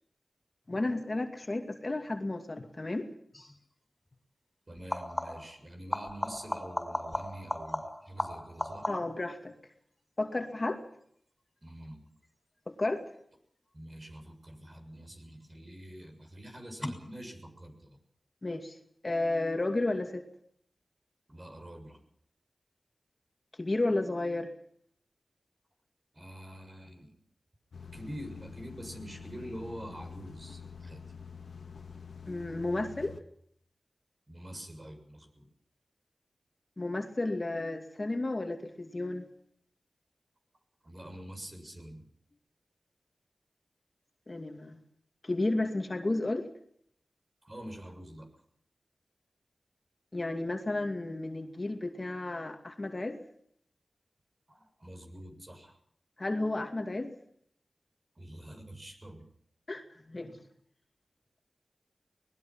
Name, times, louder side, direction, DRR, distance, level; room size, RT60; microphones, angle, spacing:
voice 1, 0.7-3.1 8.9-9.5 10.2-10.8 12.7-13.0 18.4-18.8 19.0-20.2 23.6-24.5 32.3-33.2 36.8-39.3 44.3-44.8 45.2-46.5 50.1-53.2 56.2-57.1 59.7-60.4, left 2 dB, 35° left, 4 dB, 2.4 m, -32 dB
sound 1, 3.3-3.6 4.8-5.6 5.9-9.3 14.7-15.3 16.8-16.9, left 1 dB, 20° left, 6.0 m, -36 dB
voice 2, 4.7-8.9 11.6-12.1 13.7-18.0 21.3-22.0 26.1-27.1 27.9-31.0 34.3-35.5 40.8-42.0 47.4-48.3 54.5-55.8 58.2-59.2, right 1 dB, 35° right, 5 dB, 7.1 m, -46 dB
sound 2, 27.7-33.2, left 6 dB, 90° left, 1.9 m, -47 dB
24.5 x 20.5 x 5.9 m, 0.67 s
wide cardioid pair, 70°, 0 cm